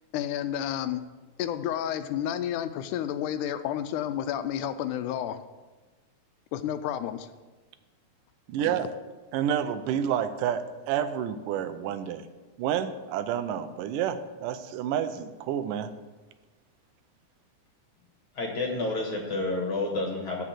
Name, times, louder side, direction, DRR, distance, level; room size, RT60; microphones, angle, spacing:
voice 1, 0.1-1.0 1.4-5.4 6.5-7.3, left 10 dB, 80° left, 11 dB, 2.0 m, -30 dB
voice 2, 8.5-8.9 9.3-12.3 12.6-15.9, right 9 dB, 90° right, 11 dB, 2.2 m, -29 dB
voice 3, 18.4-20.4, left 2 dB, 55° left, 1 dB, 1.7 m, -29 dB
7.6 x 6.5 x 7.4 m, 1.2 s
omnidirectional pair, 3.7 m